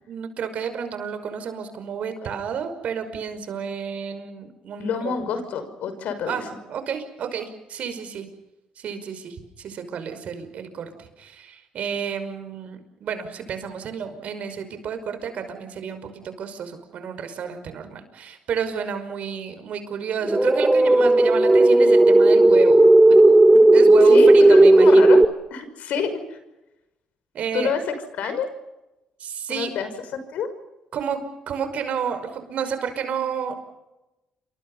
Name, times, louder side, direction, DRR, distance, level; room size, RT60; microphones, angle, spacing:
voice 1, 0.1-5.1 6.3-6.4 6.7-8.3 8.8-22.9 23.7-25.1 27.3-27.7 29.2-29.7 30.9-33.6, right 7 dB, 65° right, 9 dB, 5.5 m, -30 dB
voice 2, 4.8-6.5 24.0-25.2 25.5-26.4 27.5-28.5 29.5-30.5, left 6 dB, 70° left, 9 dB, 5.8 m, -28 dB
sound 1, 20.2-25.3, right 2 dB, 15° right, 1.3 m, -13 dB
29.0 x 25.5 x 5.6 m, 0.96 s
supercardioid pair, 65°, 2 cm